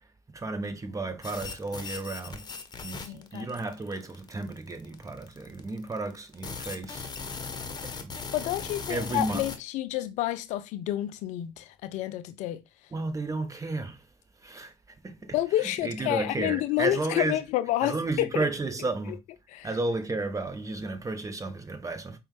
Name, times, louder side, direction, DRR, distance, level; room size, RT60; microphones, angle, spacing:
voice 1, 0.3-2.4 2.8-7.1 8.0-8.1 8.9-9.4 12.9-14.0 14.4-14.7 15.0-15.3 15.6-17.4 17.8-19.2 19.6-22.2, right 2 dB, 25° right, 1.0 m, -32 dB
sound 1, 1.2-9.6, left 5 dB, 30° left, 0.9 m, -38 dB
voice 2, 3.1-3.5 8.3-12.6 15.3-18.4 19.1-19.2 19.5-19.7, left 14 dB, 65° left, 0.4 m, -29 dB
4.9 x 2.3 x 3.2 m
hypercardioid pair, 55°, 13 cm